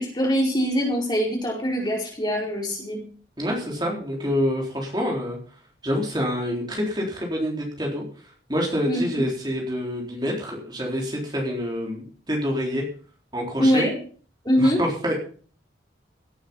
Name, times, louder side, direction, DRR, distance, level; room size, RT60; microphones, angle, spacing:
voice 1, 0.0-3.0 8.8-9.0 13.6-14.0 14.4-14.8, equal, 25° left, -1 dB, 4.7 m, -23 dB
voice 2, 3.4-5.4 5.8-8.0 8.5-12.0 12.3-12.8 13.3-13.9 14.6-15.2, equal, 25° right, -1 dB, 3.8 m, -26 dB
17.5 x 9.0 x 5.6 m, 0.43 s
head